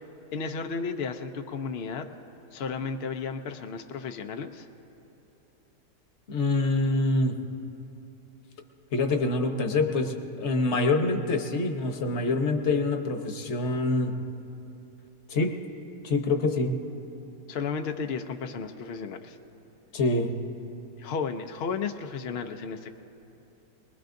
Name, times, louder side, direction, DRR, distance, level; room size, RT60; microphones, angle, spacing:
voice 1, 0.3-2.1 2.5-4.7 17.5-19.4 21.0-22.9, left 5 dB, 80° left, 5 dB, 0.5 m, -33 dB
voice 2, 6.3-7.4 8.9-14.2 15.3-15.6 16.0-16.8 19.9-20.3, left 2 dB, 50° left, 5 dB, 1.0 m, -26 dB
24.0 x 20.0 x 2.6 m, 2.9 s
omnidirectional pair, 1.8 m